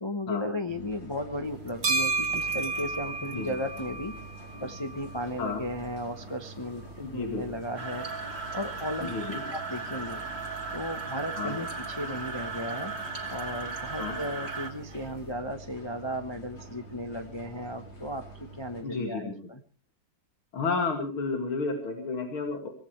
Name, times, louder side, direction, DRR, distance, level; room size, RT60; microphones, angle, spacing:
voice 1, 0.0-4.1 4.6-6.9 7.1-8.1 8.5-10.2 10.7-12.9 13.3-18.2 18.6-19.6, left 1 dB, 20° left, 6 dB, 0.7 m, -35 dB
sound 1, 0.7-18.8, right 2 dB, 60° left, 5.1 m, -47 dB
sound 2, 1.4-15.3, right 3 dB, 90° right, 4.7 m, -37 dB
voice 2, 7.0-7.4 9.1-9.4 11.4-11.6 14.0-14.2 18.8-19.3 20.5-22.7, left 4 dB, 80° left, 3 dB, 3.3 m, -31 dB
sound 3, 7.8-14.7, right 4 dB, 30° right, 2.8 m, -36 dB
25.0 x 17.5 x 3.3 m, 0.36 s
omnidirectional pair, 2.3 m